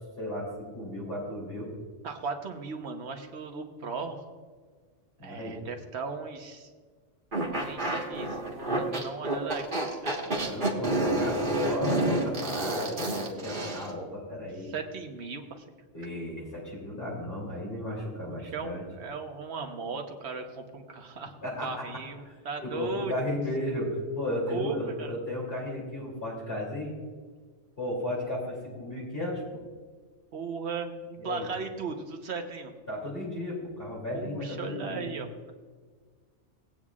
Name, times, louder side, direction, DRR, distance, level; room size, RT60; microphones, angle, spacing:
voice 1, 0.2-1.7 5.2-5.6 10.2-14.7 15.9-18.8 21.4-21.9 22.2-26.9 27.8-29.6 31.2-31.4 32.9-35.1, left 1 dB, 55° left, -5 dB, 3.2 m, -34 dB
voice 2, 2.0-4.3 5.2-6.7 7.5-9.6 10.0-10.2 14.6-15.6 18.2-23.1 24.5-25.1 30.3-32.7 34.1-35.5, right 4 dB, 70° right, 4 dB, 1.3 m, -37 dB
sound 1, 7.3-13.9, right 1 dB, 45° right, 1.7 m, -29 dB
19.0 x 8.8 x 2.4 m, 1.5 s
omnidirectional pair, 1.2 m